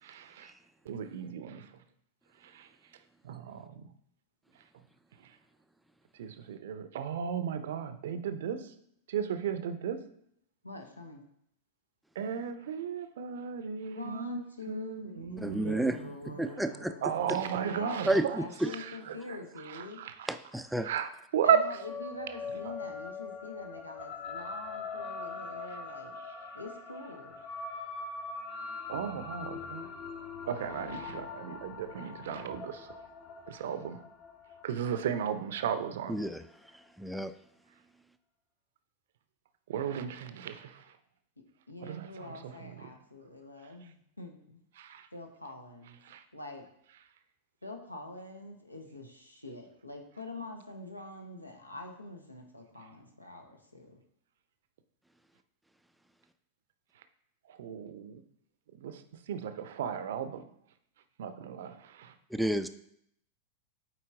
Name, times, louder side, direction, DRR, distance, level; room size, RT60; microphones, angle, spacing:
voice 1, 0.0-0.5 0.8-1.8 2.4-2.7 3.2-3.9 5.2-5.4 6.1-8.8 9.1-10.1 12.1-16.1 17.0-18.4 18.7-20.3 20.8-21.8 22.6-22.7 26.2-26.4 28.9-29.9 30.4-33.0 33.5-34.0 34.6-36.2 39.7-41.0 41.8-42.9 44.8-45.1 46.0-46.2 57.0-57.1 57.5-58.2 58.7-60.5 61.2-62.1, right 8 dB, 60° right, 11 dB, 0.5 m, -35 dB
voice 2, 10.6-11.2 13.9-17.3 17.5-20.0 21.4-26.1 26.5-27.4 41.7-44.6 45.1-46.0 46.3-46.6 47.6-54.0, left 2 dB, 85° left, 3 dB, 1.1 m, -45 dB
voice 3, 15.4-16.0 16.4-16.9 18.1-18.7 20.3-20.9 36.1-36.4 37.0-37.3 62.3-62.7, right 1 dB, 5° right, 10 dB, 0.4 m, -30 dB
sound 1, 21.6-36.3, left 4 dB, 35° left, 1.0 m, -42 dB
8.1 x 4.5 x 3.6 m, 0.70 s
figure-of-eight pair, 90°, 0 cm